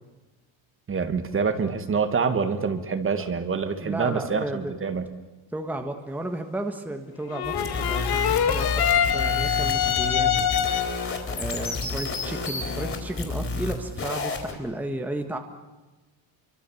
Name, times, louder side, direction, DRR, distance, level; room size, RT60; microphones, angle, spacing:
voice 1, 0.9-5.1, right 5 dB, 25° right, 9 dB, 1.7 m, -26 dB
voice 2, 3.8-4.7 5.5-10.3 11.3-15.4, right 1 dB, 5° right, 5 dB, 1.4 m, -33 dB
sound 1, 7.3-11.2, left 9 dB, 50° left, 2.0 m, -24 dB
sound 2, 7.4-14.5, left 3 dB, 25° left, 4.6 m, -31 dB
28.0 x 24.0 x 7.1 m, 1.2 s
cardioid pair, 165°, 48 cm